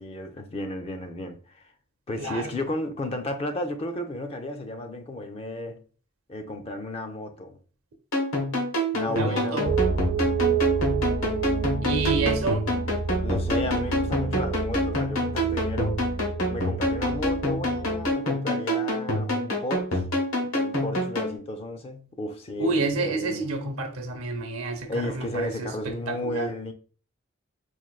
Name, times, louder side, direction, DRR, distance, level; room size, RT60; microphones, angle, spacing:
voice 1, 0.0-1.7 2.1-5.8 6.3-7.6 8.9-10.0 13.2-16.1 16.4-20.0 20.4-23.5 24.9-26.7, left 1 dB, 30° left, 0.3 m, -33 dB
voice 2, 2.2-2.6 9.1-9.7 11.8-12.7 22.6-25.7 26.1-26.5, right 3 dB, 90° right, 0.7 m, -29 dB
sound 1, 8.1-21.4, left 1 dB, 85° left, 1.1 m, -27 dB
sound 2, 9.6-18.1, right 5 dB, 65° right, 0.3 m, -29 dB
4.3 x 2.5 x 2.3 m
head